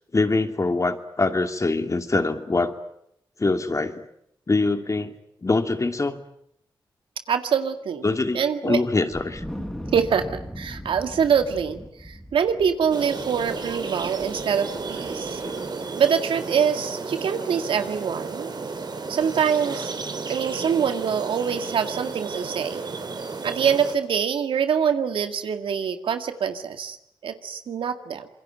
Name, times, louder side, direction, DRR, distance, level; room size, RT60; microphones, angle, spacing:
voice 1, 0.1-2.7 3.4-4.0 4.5-5.1 5.4-6.2 8.0-9.4 15.4-15.6, left 3 dB, 35° left, 7 dB, 2.7 m, -24 dB
voice 2, 7.3-8.8 9.9-15.4 16.0-18.5 19.1-19.9 20.3-22.8 23.4-27.0 27.2-28.3, right 7 dB, 80° right, 8 dB, 2.0 m, -24 dB
Wind, 9.1-15.6, equal, 5° left, 5.2 m, -39 dB
sound 1, 12.9-24.0, right 4 dB, 55° right, 3.0 m, -33 dB
26.5 x 22.5 x 9.0 m, 0.74 s
supercardioid pair, 45°, 9 cm